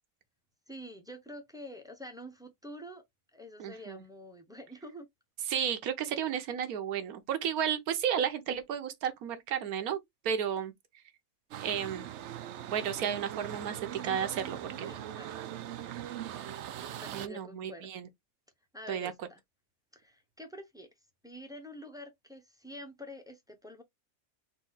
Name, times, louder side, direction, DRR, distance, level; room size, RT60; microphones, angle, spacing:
voice 1, 0.7-3.0 3.3-5.1 14.9-15.6 16.9-17.9 18.7-19.4 19.9-20.9 21.2-23.8, equal, 5° right, 0.7 m, -47 dB
voice 2, 3.6-4.0 5.5-10.0 10.2-10.7 11.6-12.1 12.7-15.0 17.1-18.1 18.9-19.1, right 8 dB, 80° right, 1.3 m, -33 dB
sound 1, 11.5-17.3, right 11 dB, 65° right, 0.7 m, -41 dB
4.1 x 2.6 x 3.9 m
omnidirectional pair, 1.5 m